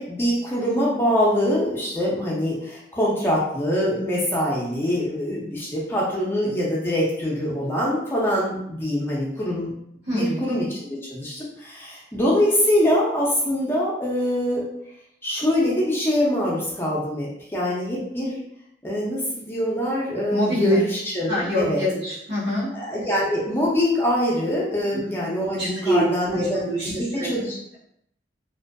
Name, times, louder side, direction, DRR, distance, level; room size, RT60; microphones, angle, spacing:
voice 1, 0.0-9.7 10.1-14.6 15.2-18.4 18.8-21.8 22.7-27.6, equal, 15° left, -5 dB, 0.4 m, -24 dB
voice 2, 10.0-10.4 20.3-20.8 21.3-22.7 24.9-25.0 25.6-27.3, equal, 70° right, -9 dB, 1.2 m, -25 dB
2.5 x 2.4 x 2.2 m, 0.76 s
head